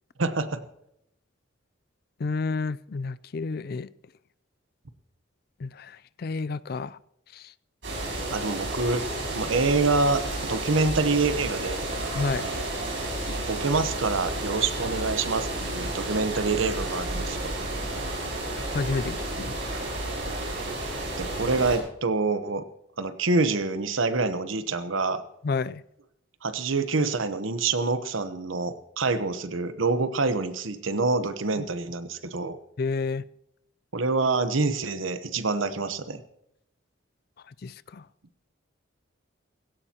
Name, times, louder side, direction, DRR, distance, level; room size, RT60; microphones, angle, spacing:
voice 1, 0.2-0.6 8.3-9.0 9.3-11.9 13.3-17.5 20.8-22.6 23.0-25.2 26.4-32.6 33.9-36.2, right 3 dB, 85° right, 11 dB, 1.0 m, -26 dB
voice 2, 2.2-3.9 5.6-7.0 7.3-7.5 12.1-12.7 18.6-19.5 25.4-25.8 31.6-31.7 32.8-33.2 37.6-38.0, left 4 dB, 50° left, 18 dB, 0.4 m, -30 dB
sound 1, 7.8-21.8, right 2 dB, 70° right, 6.4 m, -31 dB
17.0 x 16.5 x 2.9 m, 0.80 s
head